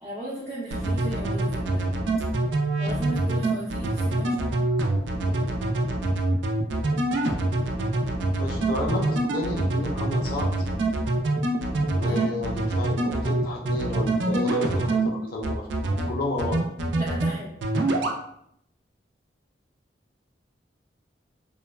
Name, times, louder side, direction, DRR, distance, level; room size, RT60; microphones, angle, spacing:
voice 1, 0.0-1.9 2.8-4.6 12.0-12.3 17.0-17.5, right 1 dB, 15° right, -9 dB, 0.4 m, -37 dB
sound 1, 0.7-15.1 15.4-16.1 16.4-17.3 17.6-18.2, right 2 dB, 85° right, 0.4 m, -25 dB
voice 2, 8.4-10.5 11.9-15.7 16.1-16.6, left 2 dB, 55° left, -1 dB, 0.5 m, -31 dB
3.0 x 2.1 x 2.2 m, 0.74 s
head